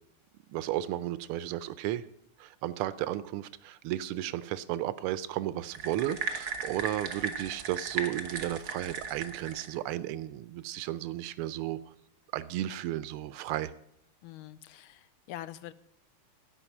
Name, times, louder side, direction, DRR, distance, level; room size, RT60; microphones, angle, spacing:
voice 1, 0.5-2.1 2.4-11.8 12.3-13.7, right 13 dB, 90° right, 15 dB, 1.5 m, -34 dB
sound 1, 5.7-9.8, right 6 dB, 55° right, 1.4 m, -36 dB
voice 2, 14.2-15.7, left 13 dB, 80° left, 14 dB, 1.4 m, -44 dB
14.0 x 5.4 x 7.1 m, 0.73 s
omnidirectional pair, 2.3 m